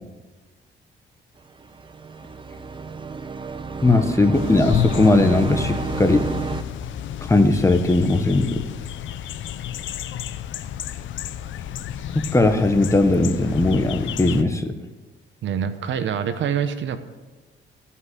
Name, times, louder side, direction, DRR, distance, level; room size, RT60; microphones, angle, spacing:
sound 1, 1.6-6.6, right 4 dB, 25° right, 0.7 m, -31 dB
voice 1, 3.8-6.3 7.3-8.6 12.1-14.7, left 2 dB, 15° left, 7 dB, 1.1 m, -18 dB
sound 2, 4.3-14.4, left 11 dB, 75° left, 0.7 m, -31 dB
voice 2, 15.4-17.0, right 8 dB, 70° right, 10 dB, 0.9 m, -25 dB
15.0 x 5.5 x 8.1 m, 1.3 s
cardioid pair, 90°, 20 cm